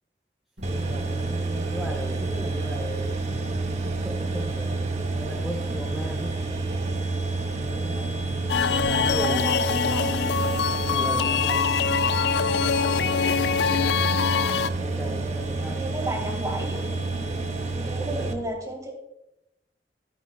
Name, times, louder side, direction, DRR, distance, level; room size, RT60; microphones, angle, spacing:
sound 1, 0.6-18.3, right 3 dB, 40° right, 0.8 m, -29 dB
sound 2, 0.6-17.7, equal, 75° right, 3.5 m, -40 dB
voice 1, 0.7-3.5 3.8-6.4 7.4-8.1 9.0-9.9 10.6-11.7 12.5-13.1 14.3-15.9 17.7-18.3, equal, ahead, -1 dB, 0.9 m, -37 dB
sound 3, 8.5-14.7, left 6 dB, 70° left, 0.3 m, -24 dB
voice 2, 8.5-10.3 10.7-11.3 15.5-16.8 17.6-18.9, right 1 dB, 20° right, 1 dB, 2.3 m, -34 dB
14.0 x 9.4 x 2.4 m, 0.91 s
head